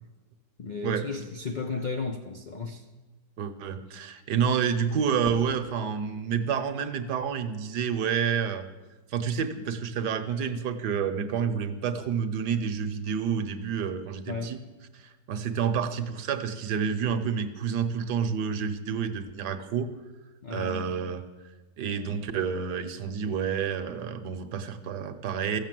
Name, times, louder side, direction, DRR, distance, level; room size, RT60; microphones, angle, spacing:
voice 1, 0.6-2.8 14.3-14.6 20.4-20.9, left 4 dB, 75° left, 0.4 m, -34 dB
voice 2, 3.4-8.7 9.1-14.6 14.9-19.9 20.5-21.2 21.8-25.6, right 7 dB, 70° right, 1.4 m, -29 dB
Fireworks, 5.2-8.1, left 1 dB, 40° left, 1.3 m, -47 dB
14.0 x 7.5 x 7.6 m
omnidirectional pair, 1.9 m